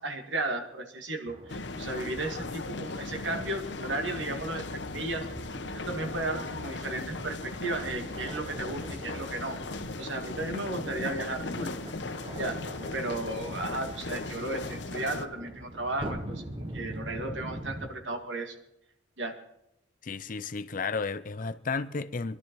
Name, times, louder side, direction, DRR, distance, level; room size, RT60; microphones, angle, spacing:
voice 1, 0.0-5.3 5.7-9.6 10.0-11.8 12.4-12.6 12.9-18.6 19.2-19.4, right 2 dB, 80° right, 2.0 m, -34 dB
sound 1, 1.3-17.9, right 1 dB, 30° right, 1.3 m, -44 dB
sound 2, 1.5-15.2, left 3 dB, 65° left, 0.9 m, -38 dB
voice 2, 20.0-22.4, left 4 dB, 45° left, 0.6 m, -33 dB
22.5 x 12.0 x 4.7 m
head